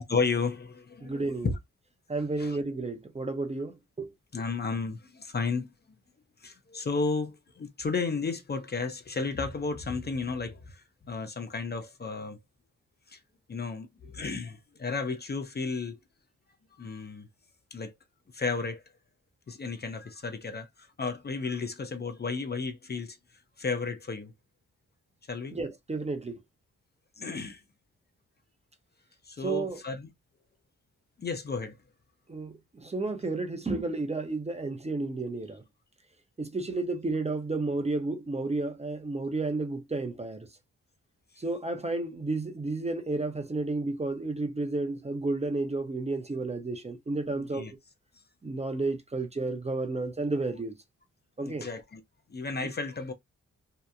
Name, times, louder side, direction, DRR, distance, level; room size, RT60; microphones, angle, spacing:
voice 1, 0.0-1.5 2.4-2.6 4.3-5.7 6.4-12.4 13.1-13.2 13.5-16.0 16.8-17.3 17.7-17.9 18.3-18.8 19.5-23.2 23.6-24.3 25.3-25.6 27.2-27.6 29.3-30.1 31.2-31.8 47.3-47.7 51.4-52.0 52.3-53.1, left 4 dB, 35° left, 0.6 m, -33 dB
voice 2, 1.0-1.5 2.1-4.1 25.5-26.4 29.4-29.8 32.3-35.6 36.4-40.5 41.4-47.7 48.4-50.8 51.4-51.7, right 3 dB, 20° right, 0.6 m, -32 dB
2.8 x 2.1 x 2.4 m
cardioid pair, 65°, 30 cm